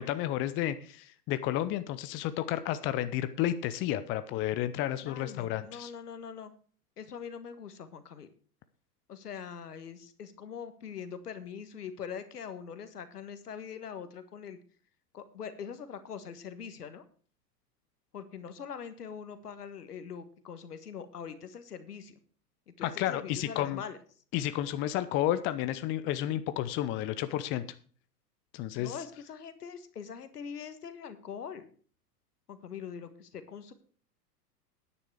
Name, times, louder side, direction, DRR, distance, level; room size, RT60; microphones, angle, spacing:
voice 1, 0.0-5.9 22.8-23.8 24.3-27.6 28.5-29.0, left 12 dB, 25° left, 12 dB, 0.6 m, -31 dB
voice 2, 5.0-6.5 7.0-8.3 9.1-14.6 15.1-17.0 18.1-22.1 22.7-24.0 28.7-31.7 32.5-33.7, left 7 dB, 70° left, 11 dB, 1.5 m, -43 dB
9.9 x 9.8 x 4.8 m, 0.43 s
figure-of-eight pair, 95°, 48 cm